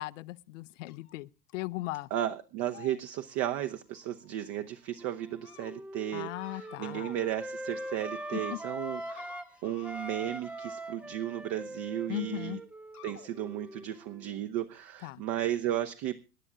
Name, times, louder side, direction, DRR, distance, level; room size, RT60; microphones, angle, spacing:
voice 1, 0.0-2.1 6.1-7.1 8.3-8.6 12.1-12.6 15.0-15.2, left 19 dB, 55° left, 0.7 m, -38 dB
sound 1, 0.9-1.1 1.5-1.9 2.1-2.3 2.7-4.6 5.2-5.7 6.3-7.3 7.6-11.2 12.1-12.2 12.9-13.3, left 10 dB, 75° left, 1.7 m, -51 dB
voice 2, 2.1-12.6 13.0-16.3, right 12 dB, 40° right, 1.0 m, -35 dB
Wind instrument woodwind instrument, 5.0-9.5 9.8-14.3, right 2 dB, 5° right, 0.5 m, -42 dB
26.0 x 11.0 x 2.4 m
figure-of-eight pair, 85°, 46 cm